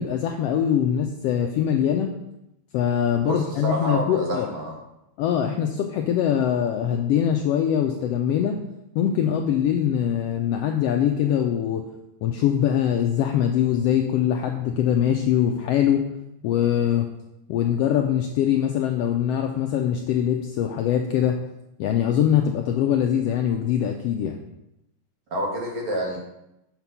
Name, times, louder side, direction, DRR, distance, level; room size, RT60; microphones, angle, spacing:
voice 1, 0.0-2.1 2.7-4.5 5.2-8.6 8.9-11.8 12.2-16.0 16.4-17.1 17.5-21.4 21.8-24.4, left 9 dB, 85° left, 4 dB, 1.4 m, -22 dB
voice 2, 3.2-4.8 25.3-26.2, right 1 dB, 55° right, -3 dB, 2.4 m, -28 dB
6.6 x 6.0 x 5.5 m, 0.88 s
omnidirectional pair, 3.3 m